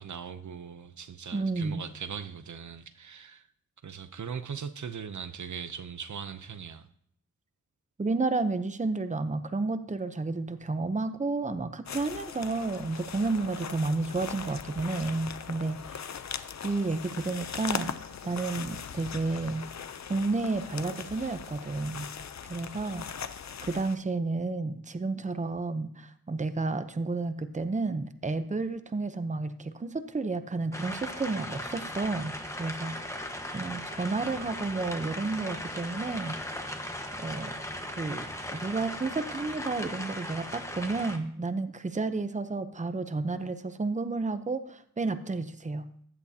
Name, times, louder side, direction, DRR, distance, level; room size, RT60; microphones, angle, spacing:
voice 1, 0.0-3.4 3.8-6.9, right 7 dB, 65° right, 0.7 m, -40 dB
voice 2, 1.3-1.8 8.0-16.2 16.6-19.6 20.1-22.1 22.4-23.3 23.6-32.9 33.5-36.7 37.2-37.5 37.9-38.2 38.5-45.9, right 3 dB, 25° right, 0.7 m, -31 dB
sound 1, 11.9-24.0, left 7 dB, 55° left, 0.6 m, -40 dB
sound 2, 30.7-41.2, left 1 dB, 10° left, 1.3 m, -38 dB
15.0 x 10.5 x 2.8 m
wide cardioid pair, 100°, 32 cm